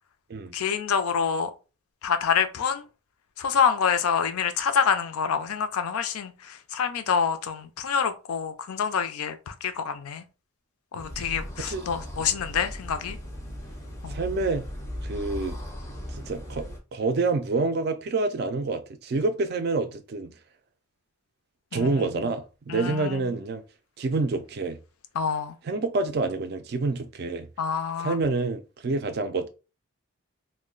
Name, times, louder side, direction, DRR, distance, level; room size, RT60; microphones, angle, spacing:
voice 1, 0.5-1.5 2.0-2.8 3.4-10.2 10.9-13.2 14.0-14.2 21.7-21.9 22.7-23.3 25.2-25.6 27.6-28.2, left 6 dB, 80° left, 0.4 m, -27 dB
voice 2, 10.9-11.3 11.6-12.2 14.1-14.7 15.0-15.6 16.1-20.3 21.7-23.6 24.0-24.8 25.6-27.5 28.0-29.5, right 3 dB, 45° right, 0.3 m, -28 dB
sound 1, 11.0-16.8, equal, 15° left, 0.5 m, -37 dB
2.3 x 2.1 x 3.7 m
head